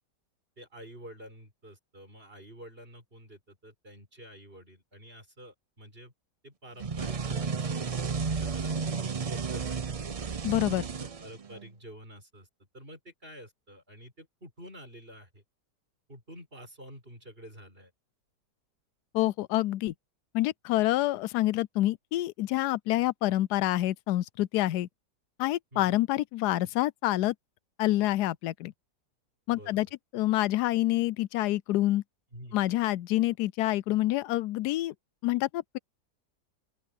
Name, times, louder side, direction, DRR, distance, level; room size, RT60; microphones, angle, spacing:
voice 1, 0.6-6.1 6.4-9.9 10.6-12.5 12.7-15.4 16.1-17.9 25.7-26.0 29.5-29.8 32.3-32.6, equal, 35° right, 7.6 m, -49 dB
sound 1, 6.8-11.7, right 5 dB, 50° right, 0.4 m, -33 dB
voice 2, 10.4-10.8 19.1-19.9 20.3-24.9 25.4-27.3 27.8-28.7 29.5-29.9 30.1-32.0 32.5-34.9 35.2-35.8, left 15 dB, 90° left, 1.1 m, -27 dB
open air
omnidirectional pair, 1.7 m